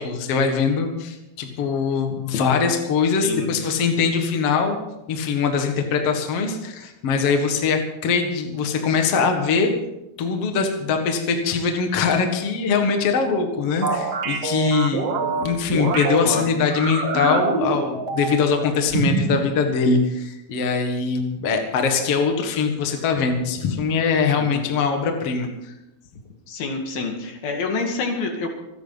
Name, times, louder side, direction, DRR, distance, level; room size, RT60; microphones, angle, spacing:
voice 1, 0.0-4.8 5.1-9.7 10.2-25.7, left 5 dB, 50° left, 4 dB, 2.1 m, -22 dB
sound 1, 13.8-16.2 16.7-18.6 18.9-19.4, right 4 dB, 50° right, 2.1 m, -25 dB
voice 2, 16.2-16.5 24.4-24.7 26.5-28.5, left 3 dB, 70° left, 2 dB, 4.0 m, -27 dB
26.0 x 11.0 x 4.0 m, 0.90 s
omnidirectional pair, 4.6 m